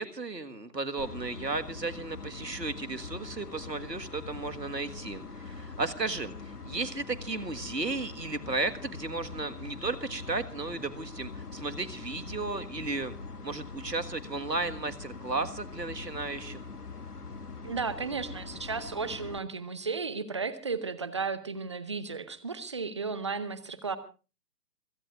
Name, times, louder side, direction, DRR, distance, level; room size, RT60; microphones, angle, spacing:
voice 1, 0.0-13.2 13.4-16.6, right 3 dB, 85° right, 10 dB, 1.7 m, -34 dB
sound 1, 1.0-19.4, left 4 dB, 70° left, 1.6 m, -43 dB
voice 2, 17.6-24.0, right 4 dB, 20° right, 15 dB, 0.7 m, -34 dB
27.0 x 17.0 x 2.5 m, 0.34 s
figure-of-eight pair, 140°, 48 cm